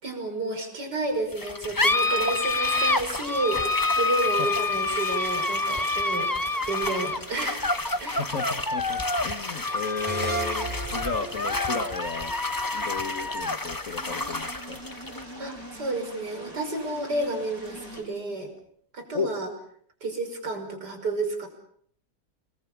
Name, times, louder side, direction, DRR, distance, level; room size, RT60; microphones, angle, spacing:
voice 1, 0.0-6.3 6.7-7.7 8.0-8.2 15.4-18.5 18.9-19.5 20.0-21.5, right 2 dB, 75° right, 5 dB, 6.3 m, -31 dB
sound 1, 1.3-18.3, left 2 dB, 15° left, 0.8 m, -28 dB
sound 2, 2.6-18.0, right 1 dB, 55° right, 7.1 m, -46 dB
voice 2, 8.2-12.3 12.7-14.8 19.1-19.3, left 5 dB, 50° left, 7 dB, 1.7 m, -34 dB
sound 3, 10.1-13.4, right 3 dB, 5° right, 3.2 m, -36 dB
28.5 x 22.0 x 7.2 m, 0.64 s
omnidirectional pair, 1.8 m